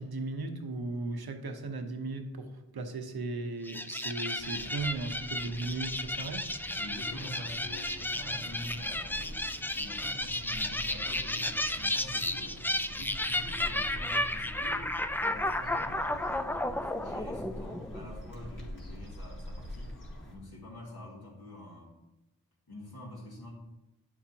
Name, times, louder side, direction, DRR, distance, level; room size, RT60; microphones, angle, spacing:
voice 1, 0.0-6.5, right 3 dB, 85° right, 5 dB, 0.9 m, -36 dB
sound 1, 3.6-18.3, left 1 dB, 5° left, 0.4 m, -33 dB
sound 2, 4.4-20.4, equal, 60° left, 2.3 m, -46 dB
voice 2, 6.7-9.4 9.8-12.6 12.9-14.9 15.2-19.9 20.3-21.9 22.7-23.5, left 1 dB, 80° left, -4 dB, 2.6 m, -46 dB
8.9 x 7.3 x 2.9 m, 0.94 s
wide cardioid pair, 55°, 36 cm